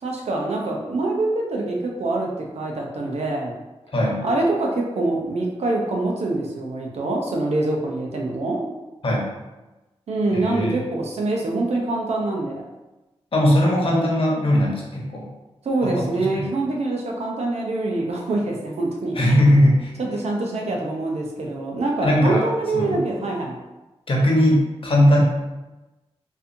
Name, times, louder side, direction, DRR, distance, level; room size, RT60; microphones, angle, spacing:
voice 1, 0.0-3.5 4.2-8.6 10.1-12.6 15.6-19.3 20.0-23.6, right 2 dB, 80° right, -1 dB, 0.7 m, -25 dB
voice 2, 3.9-4.2 9.0-9.3 10.3-10.8 13.3-15.3 15.8-16.5 19.1-19.9 22.0-22.4 22.7-23.0 24.1-25.2, left 1 dB, 55° left, -2 dB, 1.1 m, -19 dB
4.0 x 2.7 x 2.7 m, 1.1 s
cardioid pair, 55°, 11 cm